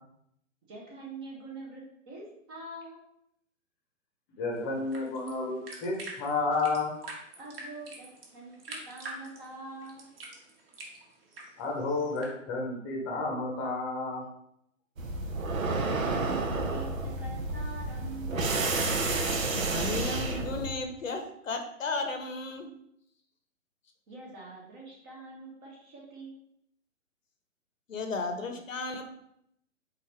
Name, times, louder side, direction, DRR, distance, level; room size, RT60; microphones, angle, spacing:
voice 1, 0.7-3.1 7.4-10.1 15.6-18.4 24.1-26.3, right 2 dB, 15° right, -4 dB, 0.7 m, -44 dB
voice 2, 4.4-6.9 11.6-14.2, left 3 dB, 20° left, -1 dB, 0.8 m, -31 dB
sound 1, 4.5-12.3, right 2 dB, 45° right, 1.3 m, -46 dB
sound 2, 15.0-20.7, right 3 dB, 80° right, 0.9 m, -30 dB
voice 3, 19.5-22.7 27.9-29.0, left 3 dB, 70° left, 6 dB, 0.9 m, -34 dB
4.0 x 3.8 x 3.2 m, 0.74 s
figure-of-eight pair, 130°, 40 cm